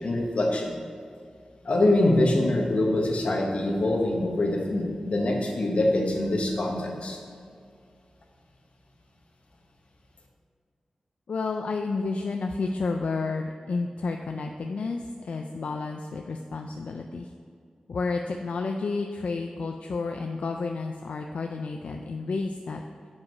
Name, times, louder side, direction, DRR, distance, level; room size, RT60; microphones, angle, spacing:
voice 1, 0.0-0.7 1.6-7.2, left 1 dB, 65° left, 0 dB, 1.1 m, -24 dB
voice 2, 11.3-17.3 17.9-22.8, left 3 dB, 85° left, 3 dB, 0.4 m, -31 dB
7.4 x 4.8 x 5.3 m, 2.2 s
wide cardioid pair, 115°, 2 cm